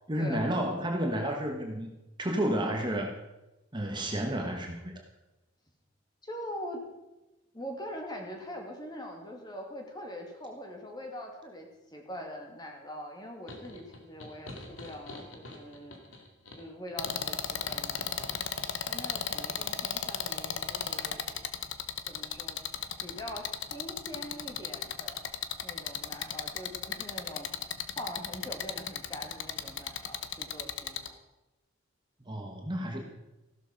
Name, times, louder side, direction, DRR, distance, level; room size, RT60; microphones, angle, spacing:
voice 1, 0.1-1.9 2.2-3.1 3.7-5.0 32.2-33.0, equal, 25° right, 2 dB, 1.4 m, -31 dB
voice 2, 6.2-6.8 7.5-16.0 16.6-18.3 18.8-21.3 22.1-22.6 23.0-25.2 25.6-27.5 28.0-31.2, equal, 20° left, 2 dB, 2.5 m, -43 dB
sound 1, 13.5-18.7, left 2 dB, 85° left, 2.4 m, -47 dB
sound 2, 17.0-31.1, left 8 dB, 65° left, 1.0 m, -35 dB
15.5 x 12.0 x 5.3 m, 1.0 s
head